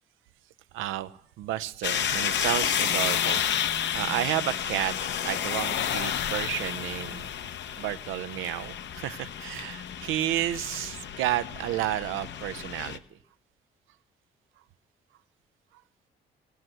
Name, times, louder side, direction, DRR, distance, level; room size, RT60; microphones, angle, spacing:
voice 1, 0.7-7.3 7.7-13.2 15.7-15.8, right 14 dB, 85° right, 13 dB, 0.4 m, -32 dB
sound 1, 1.8-13.0, left 9 dB, 65° left, 0.7 m, -31 dB
15.5 x 7.8 x 7.7 m, 0.75 s
cardioid pair, 90°, 20 cm